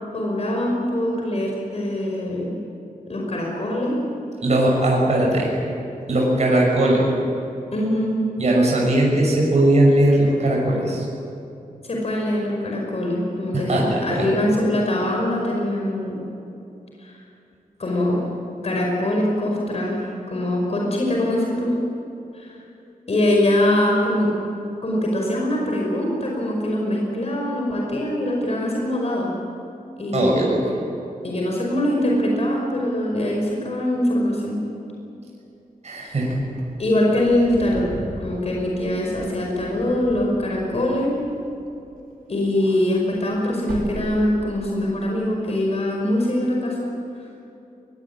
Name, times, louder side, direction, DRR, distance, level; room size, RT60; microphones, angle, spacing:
voice 1, 0.1-2.6 3.1-4.0 7.7-8.1 11.8-16.3 17.0-17.2 17.8-18.2 18.6-20.0 20.3-21.7 22.3-22.6 23.1-24.3 24.8-29.3 30.0-30.4 31.2-34.6 36.0-36.2 36.8-37.9 38.2-41.2 42.3-46.9, left 1 dB, 45° left, -1 dB, 5.3 m, -23 dB
voice 2, 4.4-5.5 6.1-7.1 8.4-11.1 13.5-14.7 30.1-30.7 35.8-36.4, right 1 dB, 50° right, -2 dB, 6.2 m, -19 dB
Wind / Car, 36.2-42.0 42.3-44.8, right 2 dB, 70° right, 5.4 m, -39 dB
23.5 x 21.5 x 8.8 m, 2.8 s
wide cardioid pair, 160°, 15 cm